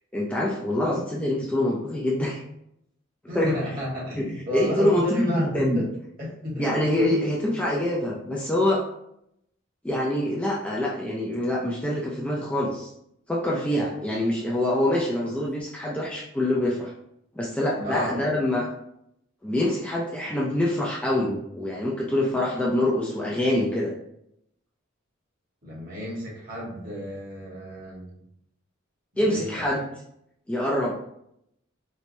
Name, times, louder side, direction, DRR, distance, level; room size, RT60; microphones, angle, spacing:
voice 1, 0.1-2.4 3.3-3.6 4.2-5.8 6.6-8.8 9.8-12.9 13.3-16.9 17.4-18.7 19.4-23.9 29.2-29.8 30.5-30.9, left 1 dB, 5° left, -4 dB, 0.3 m, -25 dB
voice 2, 3.3-5.8 6.2-7.2 17.8-18.1 25.6-28.1 29.1-29.6, equal, 45° right, -5 dB, 1.2 m, -32 dB
4.3 x 2.1 x 2.6 m, 0.77 s
head